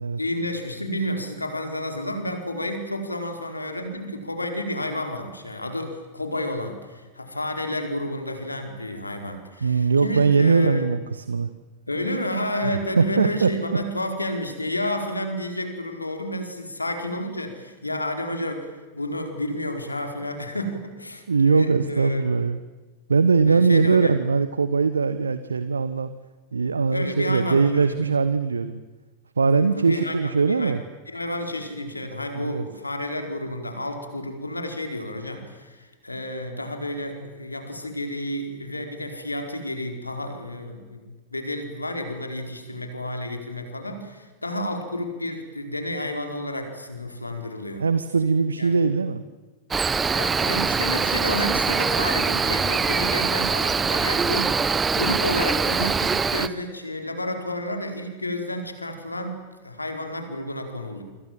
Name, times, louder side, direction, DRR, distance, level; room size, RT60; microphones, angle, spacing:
voice 1, 0.2-10.9 11.9-22.4 23.5-24.2 26.9-28.0 29.5-30.8 31.1-47.8 48.6-48.7 50.1-59.4 59.6-61.0, left 1 dB, 85° left, 5 dB, 4.6 m, -31 dB
voice 2, 9.6-11.5 13.0-13.5 21.3-22.6 23.1-26.1 26.5-28.8 29.4-30.8 32.3-32.7 47.8-49.2, right 4 dB, 75° right, 13 dB, 1.2 m, -21 dB
Cricket, 49.7-56.5, right 5 dB, 15° right, 1.3 m, -23 dB
29.5 x 25.5 x 7.4 m, 1.3 s
figure-of-eight pair, 90°, 0 cm